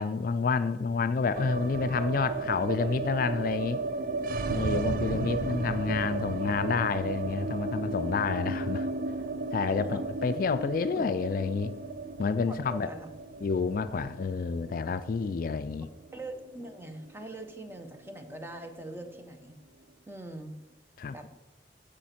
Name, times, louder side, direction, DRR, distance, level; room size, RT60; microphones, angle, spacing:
voice 1, 0.0-3.8 4.5-8.9 9.5-11.7 12.2-12.9 13.4-15.9 21.0-21.2, left 5 dB, 50° left, 12 dB, 0.3 m, -29 dB
sound 1, 1.3-17.5 17.7-17.8 18.1-18.8, right 3 dB, 50° right, 0.4 m, -34 dB
voice 2, 12.5-13.1 16.1-19.6 20.1-20.5 21.1-21.3, right 1 dB, 15° right, 5 dB, 0.8 m, -42 dB
13.5 x 5.1 x 4.3 m, 1.0 s
head